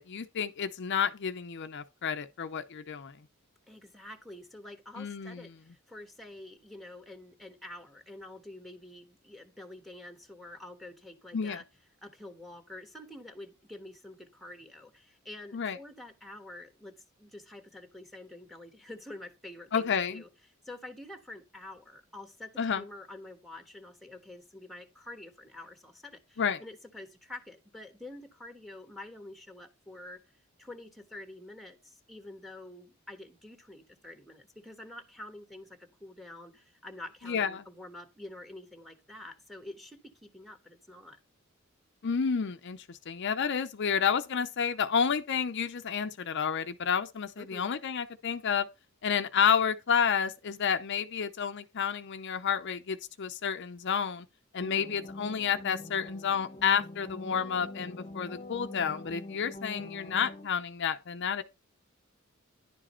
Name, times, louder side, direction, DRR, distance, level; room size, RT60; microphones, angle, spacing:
voice 1, 0.0-3.2 5.0-5.4 11.3-11.6 15.5-15.8 19.7-20.2 22.6-22.8 26.4-26.6 37.3-37.6 42.0-48.7 49.0-54.3 54.5-61.4, left 7 dB, 55° left, 0.5 m, -30 dB
voice 2, 3.7-11.6 12.0-20.3 20.6-30.2 30.6-41.2 47.4-47.7, left 1 dB, ahead, 1.3 m, -47 dB
sound 1, 54.6-60.4, left 2 dB, 30° left, 0.9 m, -44 dB
10.5 x 4.9 x 4.3 m
head